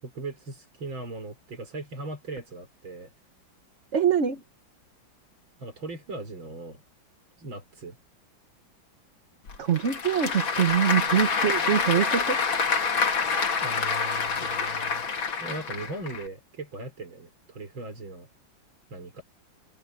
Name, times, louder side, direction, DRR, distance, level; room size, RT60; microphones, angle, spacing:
voice 1, 0.0-3.1 5.6-6.8 7.4-8.0 13.6-15.1 15.4-18.3 18.9-19.2, right 2 dB, 90° right, 5.5 m, -39 dB
voice 2, 3.9-4.4 9.6-12.4, right 8 dB, 40° right, 1.3 m, -24 dB
Applause / Crowd, 9.5-16.2, left 5 dB, 80° left, 3.1 m, -27 dB
open air
omnidirectional pair, 2.1 m